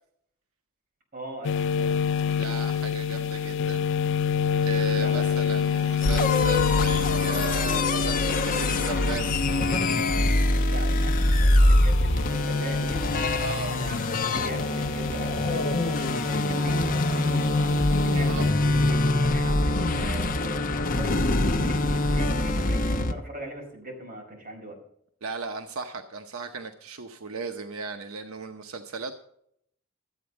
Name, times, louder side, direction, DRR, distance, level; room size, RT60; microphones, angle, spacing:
voice 1, 1.1-2.5 4.9-5.4 10.6-13.1 13.7-17.5 18.0-20.6 20.9-24.8, right 1 dB, 45° right, 0 dB, 5.1 m, -40 dB
sound 1, 1.4-18.5, left 7 dB, 60° left, 0.4 m, -29 dB
voice 2, 2.3-3.8 4.6-9.4 13.4-13.8 18.0-18.4 25.2-29.1, right 4 dB, 90° right, 6 dB, 0.9 m, -36 dB
sound 2, 6.0-23.1, left 2 dB, 40° left, 0.9 m, -24 dB
13.5 x 8.7 x 5.3 m, 0.68 s
head